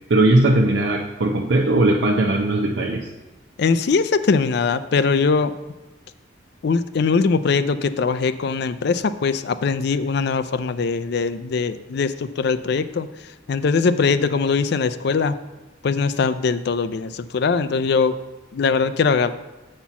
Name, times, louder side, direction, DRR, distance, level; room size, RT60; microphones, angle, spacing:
voice 1, 0.1-3.1, right 2 dB, 65° right, 0 dB, 0.6 m, -18 dB
voice 2, 3.6-5.5 6.6-15.4 15.8-18.2 18.5-19.3, left 5 dB, 55° left, 12 dB, 0.4 m, -21 dB
7.2 x 4.4 x 6.9 m, 1.1 s
head